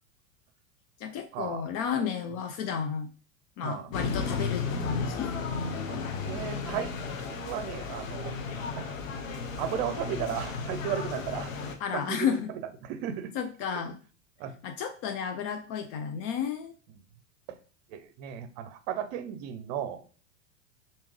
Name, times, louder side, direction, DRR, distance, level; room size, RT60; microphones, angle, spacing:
voice 1, 1.0-3.1 3.6-5.3 11.8-12.5 13.3-14.0 14.6-16.7, left 7 dB, 45° left, 6 dB, 0.5 m, -32 dB
voice 2, 3.6-3.9 5.8-6.9 7.3-8.4 8.7-8.9 9.6-11.5 11.9-13.3 14.4-14.5 17.5-17.6 17.9-20.0, right 9 dB, 50° right, 10 dB, 0.7 m, -35 dB
sound 1, 3.9-11.8, left 4 dB, 80° left, 0.7 m, -34 dB
3.5 x 2.8 x 3.1 m, 0.39 s
hypercardioid pair, 90°, 39 cm